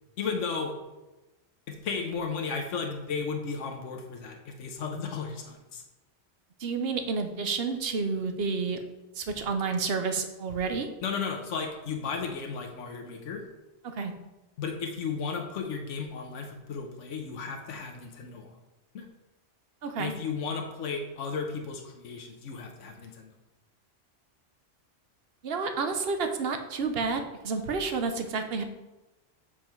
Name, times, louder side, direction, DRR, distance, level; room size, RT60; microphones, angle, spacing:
voice 1, 0.2-0.8 1.7-5.8 11.0-13.4 14.6-18.5 18.9-19.1 20.0-23.3, left 5 dB, 80° left, 3 dB, 1.2 m, -34 dB
voice 2, 6.6-8.8 9.2-10.9 13.8-14.1 19.8-20.1 25.4-28.6, right 4 dB, 60° right, 7 dB, 1.0 m, -30 dB
7.5 x 4.9 x 4.5 m, 1.0 s
omnidirectional pair, 1.2 m